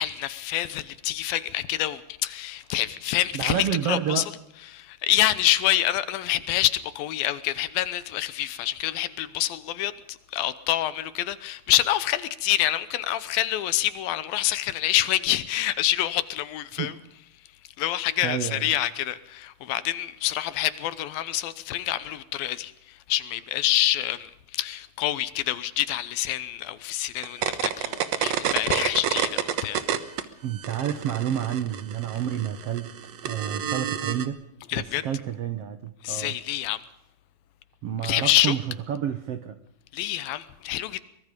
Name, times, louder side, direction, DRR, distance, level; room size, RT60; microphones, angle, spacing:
voice 1, 0.0-4.2 4.7-17.0 17.8-29.8 34.7-35.1 36.0-36.8 38.0-38.5 39.9-41.0, left 13 dB, 75° left, 2.6 m, -27 dB
voice 2, 3.3-4.2 16.8-16.9 18.2-18.7 30.4-32.9 33.2-34.3 34.7-36.3 37.8-38.6 38.9-39.6, right 9 dB, 80° right, 1.3 m, -29 dB
sound 1, 27.2-30.2 30.5-34.3, right 9 dB, 65° right, 1.8 m, -28 dB
23.5 x 21.5 x 5.3 m
omnidirectional pair, 4.4 m